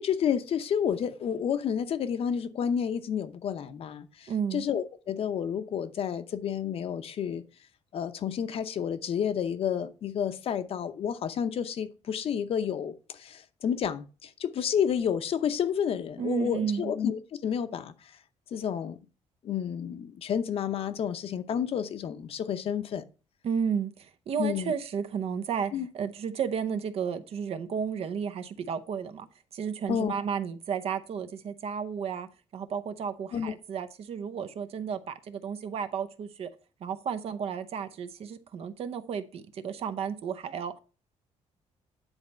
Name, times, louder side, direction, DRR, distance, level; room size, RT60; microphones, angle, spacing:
voice 1, 0.0-7.4 7.9-17.9 18.5-19.0 19.4-23.0 24.4-24.7 25.7-25.9 29.9-30.1 33.3-33.5, left 8 dB, 55° left, 0.8 m, -30 dB
voice 2, 4.3-4.6 16.2-16.9 23.4-29.3 29.5-32.3 32.5-36.5 36.8-40.8, right 7 dB, 55° right, 0.8 m, -33 dB
9.9 x 4.2 x 5.4 m
cardioid pair, 160°, 12 cm